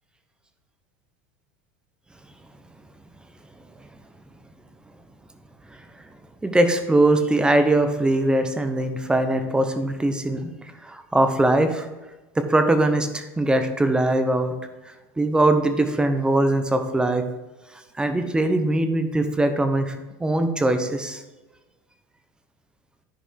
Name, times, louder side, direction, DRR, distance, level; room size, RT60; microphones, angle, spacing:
voice 1, 6.4-11.9 12.4-14.5 15.2-17.2 18.0-21.2, right 1 dB, 10° right, 8 dB, 0.9 m, -21 dB
10.0 x 5.2 x 4.6 m, 1.1 s
supercardioid pair, 130°, 10 cm